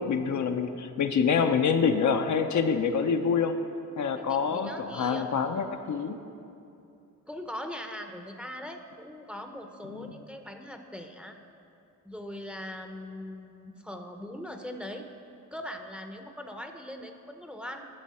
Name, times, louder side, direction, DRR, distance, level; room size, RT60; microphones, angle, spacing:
voice 1, 0.0-3.6 4.0-6.2 9.9-10.1, left 6 dB, 60° left, 6 dB, 0.6 m, -26 dB
voice 2, 4.2-5.4 7.3-11.4 12.0-15.1 15.5-17.9, left 1 dB, 5° right, 5 dB, 0.7 m, -41 dB
11.0 x 6.8 x 4.2 m, 2.7 s
cardioid pair, 70°, 34 cm